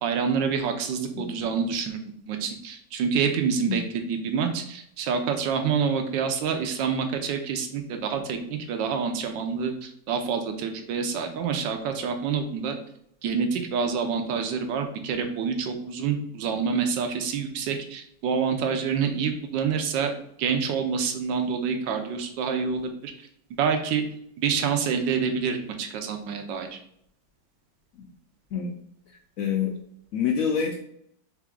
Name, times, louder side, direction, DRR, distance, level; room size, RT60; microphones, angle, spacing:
voice 1, 0.0-2.0 2.3-3.8 4.1-12.8 13.2-20.1 20.4-23.1 23.6-24.0 24.4-26.8, right 6 dB, 80° right, 5 dB, 1.3 m, -27 dB
voice 2, 29.4-29.7 30.1-30.8, left 7 dB, 80° left, 2 dB, 0.7 m, -27 dB
4.1 x 3.5 x 3.6 m, 0.72 s
omnidirectional pair, 2.0 m